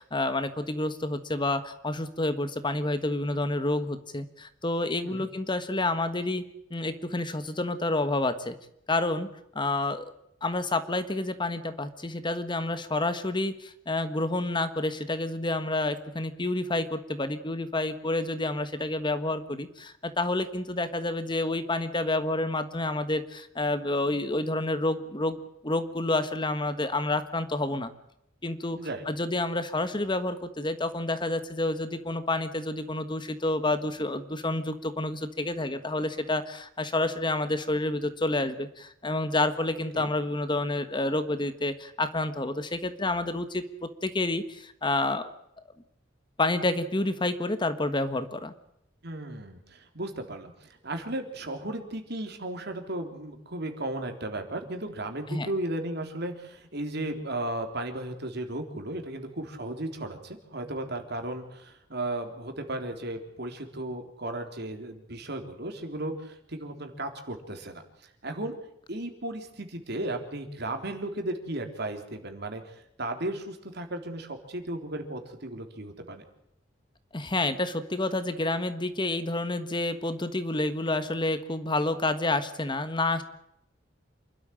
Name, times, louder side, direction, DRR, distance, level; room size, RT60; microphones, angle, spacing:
voice 1, 0.0-6.4 6.7-8.5 8.9-9.3 9.5-10.1 10.4-27.9 28.4-28.8 29.1-43.6 44.0-45.3 46.4-48.5 55.3-55.5 77.1-83.2, left 2 dB, 25° left, 11 dB, 1.4 m, -29 dB
voice 2, 49.0-68.5 68.9-76.2, right 1 dB, 60° right, 5 dB, 3.6 m, -35 dB
27.5 x 12.5 x 8.9 m, 0.77 s
head